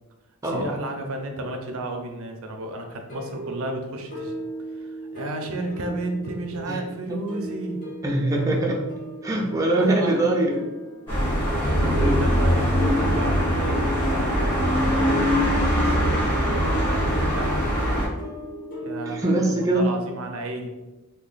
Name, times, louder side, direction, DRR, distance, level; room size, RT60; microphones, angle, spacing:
voice 1, 0.4-4.3 4.8-7.8 9.8-10.2 11.8-12.7 13.0-17.7 18.8-20.7, right 2 dB, 65° right, 4 dB, 0.5 m, -33 dB
sound 1, 3.1-19.2, right 1 dB, 40° left, 0.8 m, -37 dB
voice 2, 8.0-8.8 9.2-10.7 11.6-12.2 19.0-19.9, right 1 dB, 15° right, -2 dB, 0.4 m, -23 dB
sound 2, 11.1-18.1, equal, 10° left, 1.2 m, -22 dB
Acoustic guitar, 11.8-17.0, left 4 dB, 70° left, 0.3 m, -38 dB
3.0 x 2.3 x 3.8 m, 1.1 s
head